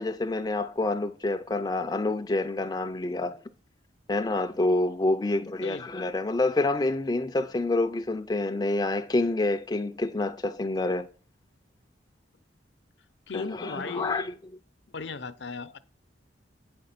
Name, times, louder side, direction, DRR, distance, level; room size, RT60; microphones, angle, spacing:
voice 1, 0.0-3.4 4.1-11.1 13.3-14.3, left 2 dB, 20° left, 0.4 m, -27 dB
voice 2, 13.3-14.4 14.9-15.8, left 4 dB, 70° left, 0.6 m, -36 dB
8.4 x 5.2 x 5.7 m
head